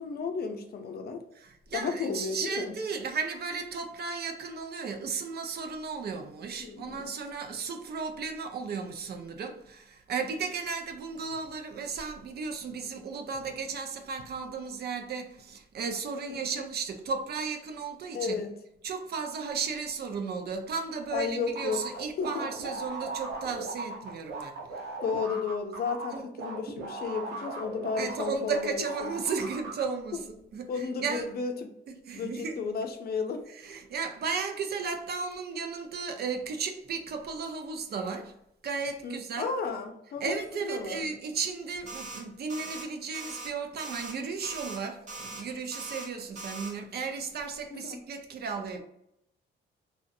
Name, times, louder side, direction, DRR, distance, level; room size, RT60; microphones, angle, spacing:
voice 1, 0.0-1.2 1.7-2.7 6.6-7.1 16.5-16.6 18.1-18.5 21.1-21.8 22.2-22.4 25.0-29.1 30.7-31.7 32.1-33.4 39.0-40.3 40.6-41.1 47.7-48.0, left 5 dB, 50° left, 0.6 m, -33 dB
voice 2, 1.4-18.4 18.8-24.6 26.1-26.3 28.0-31.3 32.1-32.6 33.5-38.4 38.6-39.5 40.2-48.8, right 5 dB, 55° right, 0.5 m, -35 dB
sound 1, 21.6-28.6 28.9-29.8, right 3 dB, 85° right, 0.8 m, -38 dB
sound 2, 41.9-42.2 42.5-42.8 43.1-43.5 43.8-44.1 44.4-44.8 45.1-45.4 45.7-46.1 46.4-46.7, right 2 dB, 40° right, 0.8 m, -40 dB
2.6 x 2.1 x 2.6 m
cardioid pair, 90°, 20 cm